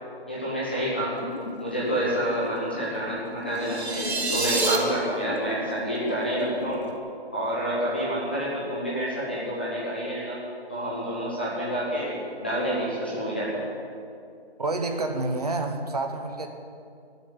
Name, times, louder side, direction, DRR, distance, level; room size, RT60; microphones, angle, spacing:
voice 1, 0.3-1.2 1.6-6.8 7.3-10.4 10.7-13.6, equal, 10° left, -7 dB, 0.8 m, -28 dB
sound 1, 1.2-7.0, left 3 dB, 40° left, 1.2 m, -38 dB
sound 2, 3.6-4.8, right 3 dB, 85° right, 2.4 m, -26 dB
voice 2, 14.6-16.5, right 2 dB, 40° right, 5 dB, 1.1 m, -28 dB
16.5 x 7.2 x 9.8 m, 2.5 s
hypercardioid pair, 175°, 32 cm